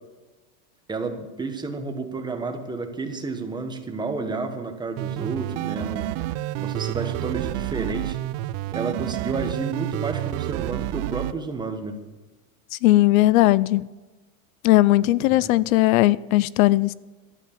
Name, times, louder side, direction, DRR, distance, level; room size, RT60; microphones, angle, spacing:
voice 1, 0.9-6.1 6.6-8.2 8.7-12.0 15.2-15.5, right 3 dB, 10° right, 1.3 m, -31 dB
sound 1, 5.0-11.3, right 15 dB, 45° right, 0.4 m, -29 dB
voice 2, 12.8-13.8 14.6-16.9, left 17 dB, 75° left, 0.5 m, -18 dB
12.5 x 9.3 x 7.2 m
supercardioid pair, 140°, 42 cm